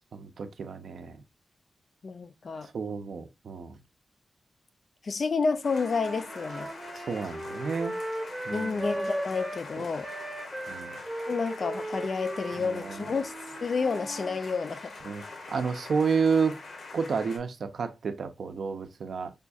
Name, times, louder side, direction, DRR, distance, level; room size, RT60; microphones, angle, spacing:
voice 1, 0.1-1.2 2.7-3.8 7.1-8.0 8.5-8.9 9.8-9.9 10.7-11.0 12.6-13.0 15.1-15.2 15.5-16.6 16.9-19.3, right 5 dB, 70° right, 0.5 m, -30 dB
voice 2, 2.0-2.7 3.2-3.3 5.0-6.7 8.5-10.1 11.3-13.3 13.6-14.9 15.3-15.4, left 4 dB, 45° left, 0.4 m, -30 dB
sound 1, 5.6-17.4, left 3 dB, 90° left, 1.0 m, -44 dB
Wind instrument woodwind instrument, 5.7-9.6 10.0-14.4, right 1 dB, 15° right, 0.6 m, -37 dB
4.9 x 2.3 x 2.5 m
wide cardioid pair, 165°, 0 cm